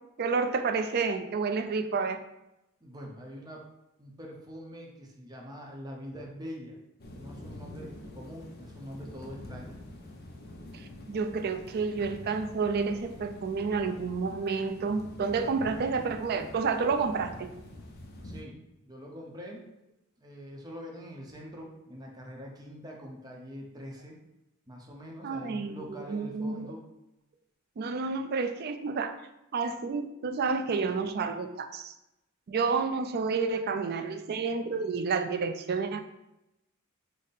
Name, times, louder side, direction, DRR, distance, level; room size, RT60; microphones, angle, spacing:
voice 1, 0.2-2.2 10.7-17.5 25.2-26.7 27.8-29.1 29.5-31.9 32.5-36.0, right 4 dB, 45° right, 7 dB, 0.4 m, -30 dB
voice 2, 2.8-3.6 4.0-6.8 7.2-9.8 18.2-19.6 20.2-24.2 24.7-26.8, equal, 20° right, -1 dB, 0.7 m, -44 dB
sound 1, 7.0-18.4, left 1 dB, 45° left, 0.6 m, -46 dB
5.2 x 2.1 x 4.1 m, 0.91 s
head